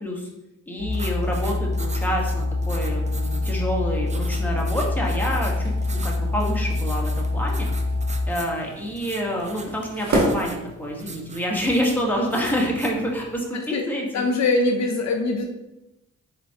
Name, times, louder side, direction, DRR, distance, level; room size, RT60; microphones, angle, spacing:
voice 1, 0.7-7.7 8.3-14.3, equal, 5° left, -2 dB, 1.1 m, -27 dB
sound 1, 0.8-8.3, left 2 dB, 85° right, 1.1 m, -25 dB
sound 2, 0.9-13.4, right 3 dB, 20° right, 0.4 m, -42 dB
sound 3, 5.3-11.3, right 1 dB, 60° right, 1.4 m, -31 dB
voice 2, 14.1-15.4, left 3 dB, 60° left, 3 dB, 0.5 m, -22 dB
4.1 x 3.3 x 2.7 m, 0.95 s
cardioid pair, 60°, 32 cm